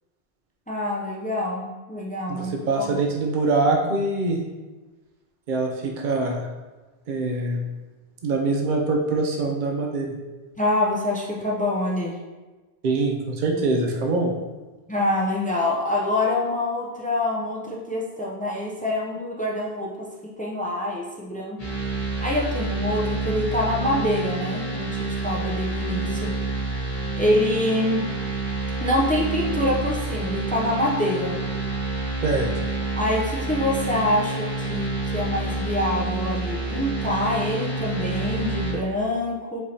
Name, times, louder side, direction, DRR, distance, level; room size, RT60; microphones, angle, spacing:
voice 1, 0.7-2.9 10.6-12.1 14.9-20.1 20.4-21.6 22.2-26.3 27.1-28.0 28.8-31.4 32.9-39.6, left 1 dB, 10° left, -3 dB, 0.4 m, -25 dB
voice 2, 2.3-4.4 5.5-6.4 7.1-7.6 8.2-10.1 12.8-14.3 32.2-32.5, right 3 dB, 55° right, 0 dB, 0.7 m, -24 dB
sound 1, 21.6-38.7, right 3 dB, 40° left, 1.2 m, -28 dB
5.3 x 3.3 x 2.8 m, 1.2 s
omnidirectional pair, 1.0 m